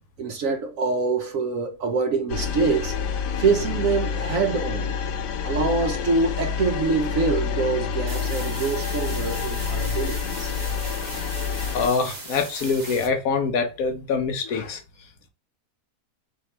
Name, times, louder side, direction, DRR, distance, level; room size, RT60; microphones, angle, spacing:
voice 1, 0.2-3.0 3.4-4.9 5.4-10.5, right 4 dB, 65° right, 1.0 m, -25 dB
sound 1, 2.3-11.9, left 6 dB, 90° left, 1.3 m, -28 dB
sound 2, 8.1-13.1, right 2 dB, 30° right, 1.2 m, -37 dB
voice 2, 11.7-14.8, left 5 dB, 65° left, 1.0 m, -24 dB
3.5 x 2.7 x 4.3 m
omnidirectional pair, 1.7 m